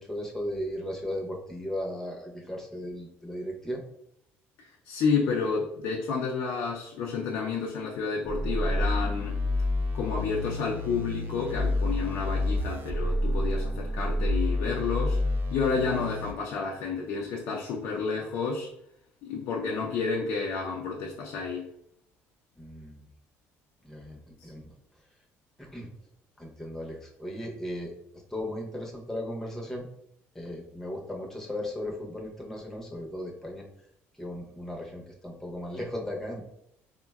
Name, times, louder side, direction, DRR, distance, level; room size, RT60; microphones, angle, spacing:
voice 1, 0.0-3.8 22.6-23.1 23.8-24.7 25.6-25.9 26.4-27.9 28.3-29.9 30.3-33.6 34.1-36.4, left 1 dB, 10° left, -1 dB, 0.6 m, -36 dB
voice 2, 4.9-9.3 9.9-15.2 15.5-18.7 19.2-21.6 24.4-24.5, left 5 dB, 70° left, -1 dB, 0.4 m, -30 dB
sound 1, 8.2-16.3, left 1 dB, 40° right, 0.3 m, -29 dB
3.6 x 2.1 x 2.2 m, 0.75 s
cardioid pair, 115°, 5 cm